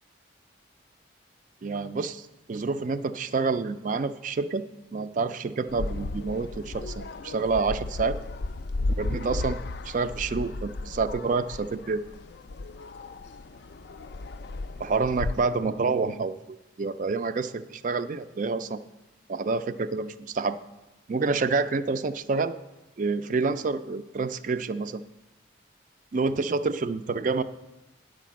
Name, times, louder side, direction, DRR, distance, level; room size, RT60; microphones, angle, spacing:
voice 1, 1.6-4.7 4.9-8.2 9.0-9.6 9.8-12.0 14.8-18.8 19.3-20.6 21.1-22.6 23.0-25.0 26.1-27.4, right 4 dB, 40° right, 13 dB, 0.3 m, -28 dB
sound 1, 5.7-15.4, left 2 dB, 55° left, 0.3 m, -34 dB
9.9 x 5.0 x 7.3 m, 1.0 s
head